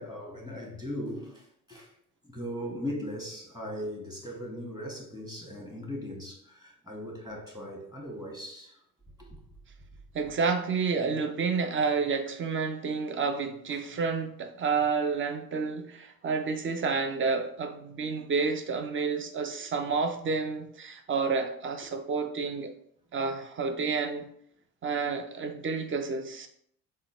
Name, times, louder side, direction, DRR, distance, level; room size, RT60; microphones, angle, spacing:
voice 1, 0.0-1.9 2.2-8.8 9.2-9.4 13.7-13.9, equal, 10° right, 1.4 m, -39 dB
voice 2, 10.1-22.7 23.1-24.3 24.8-26.5, right 5 dB, 30° right, 0.6 m, -30 dB
3.7 x 2.1 x 4.2 m
hypercardioid pair, 55°, 43 cm